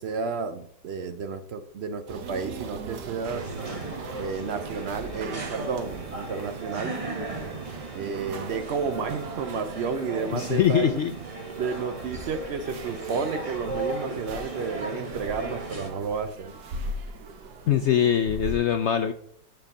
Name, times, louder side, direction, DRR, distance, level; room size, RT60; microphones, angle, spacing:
voice 1, 0.0-3.5 4.2-6.9 7.9-11.0 11.6-16.5, right 5 dB, 65° right, 9 dB, 0.6 m, -31 dB
sound 1, 2.1-18.6, right 3 dB, 80° right, 1.4 m, -40 dB
sound 2, 3.3-15.9, right 2 dB, 25° right, 1.1 m, -37 dB
voice 2, 10.3-11.1 17.7-19.1, left 9 dB, 70° left, 8 dB, 0.6 m, -22 dB
7.4 x 4.6 x 6.5 m, 0.65 s
omnidirectional pair, 1.7 m